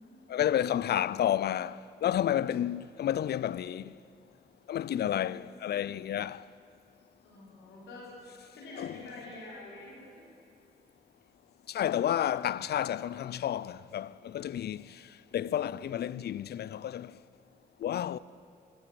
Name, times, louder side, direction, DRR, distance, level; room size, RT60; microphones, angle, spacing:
voice 1, 0.3-4.0 4.7-6.5 8.8-9.0 11.7-15.1 15.3-17.2 17.8-18.2, left 11 dB, 60° left, 0.4 m, -31 dB
voice 2, 4.9-5.2 7.2-8.1 8.5-10.2, left 2 dB, 90° left, 3.9 m, -46 dB
13.0 x 12.5 x 7.6 m
supercardioid pair, 50°, 19 cm